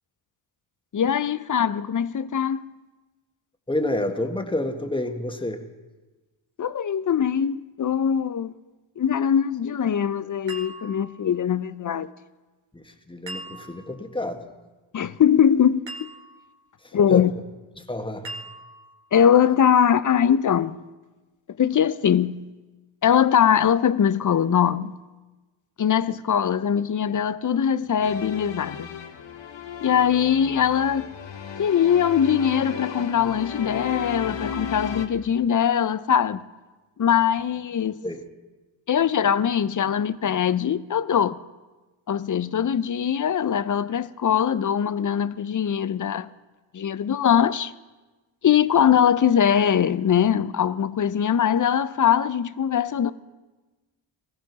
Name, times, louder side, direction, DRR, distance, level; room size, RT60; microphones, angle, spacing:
voice 1, 0.9-2.7 6.6-8.5 9.0-12.1 14.9-16.1 16.9-17.3 19.1-20.8 21.6-22.5 23.0-24.9 25.8-28.9 29.8-31.1 31.6-36.5 37.0-38.0 38.9-41.4 42.1-46.3 46.7-47.7 48.4-53.1, left 8 dB, 40° left, 0.6 m, -21 dB
voice 2, 3.7-5.6 12.7-14.5 16.8-17.3 17.8-18.4 38.0-38.2, left 1 dB, 10° left, 1.5 m, -29 dB
sound 1, 10.5-11.4 13.3-14.0 15.9-16.6 18.2-19.0, right 2 dB, 60° right, 1.9 m, -40 dB
sound 2, 28.0-35.1, left 6 dB, 60° left, 1.3 m, -35 dB
18.0 x 15.0 x 4.1 m
cardioid pair, 60°, 50 cm